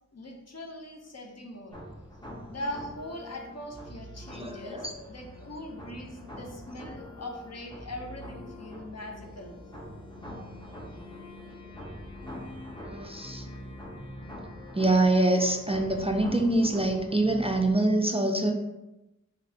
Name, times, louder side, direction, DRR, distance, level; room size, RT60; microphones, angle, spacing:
voice 1, 0.1-1.8 2.5-9.6, left 1 dB, 55° left, 2 dB, 0.7 m, -41 dB
sound 1, 1.7-17.7, left 1 dB, 15° left, 0.8 m, -43 dB
voice 2, 4.3-4.9 12.8-13.5 14.7-18.5, right 2 dB, 20° right, 2 dB, 0.3 m, -25 dB
3.9 x 3.3 x 2.7 m, 0.98 s
wide cardioid pair, 45°, 30 cm